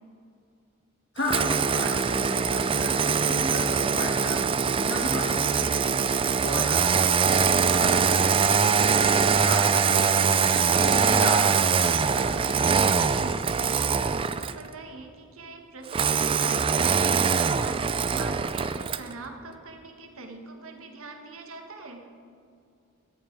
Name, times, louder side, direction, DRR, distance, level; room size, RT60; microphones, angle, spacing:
voice 1, 1.1-6.0 6.4-10.2 10.5-12.5, left 1 dB, 60° left, -2 dB, 3.0 m, -34 dB
Engine starting, 1.2-14.7 15.9-19.1, right 6 dB, 25° right, 0.4 m, -23 dB
voice 2, 13.1-22.1, right 3 dB, 80° right, 4 dB, 1.5 m, -43 dB
14.0 x 12.5 x 4.7 m, 2.4 s
head